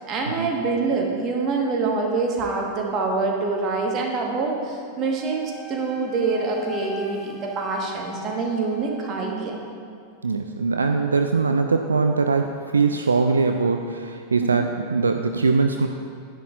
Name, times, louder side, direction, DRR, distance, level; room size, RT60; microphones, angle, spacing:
voice 1, 0.0-9.6 14.4-14.6, right 4 dB, 30° right, 0 dB, 1.4 m, -25 dB
Wind instrument woodwind instrument, 5.2-9.4, left 2 dB, 10° left, 0.9 m, -40 dB
voice 2, 10.2-15.9, right 4 dB, 75° right, 5 dB, 0.3 m, -21 dB
10.5 x 10.0 x 2.5 m, 2.3 s
figure-of-eight pair, 90°, 0 cm